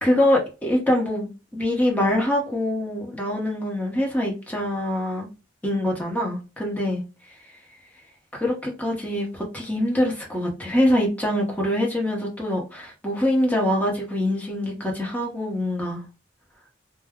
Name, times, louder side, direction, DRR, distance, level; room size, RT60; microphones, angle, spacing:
voice 1, 0.0-5.3 5.6-7.0 8.3-16.0, left 1 dB, 10° left, 0.8 m, -24 dB
2.3 x 2.1 x 3.4 m
head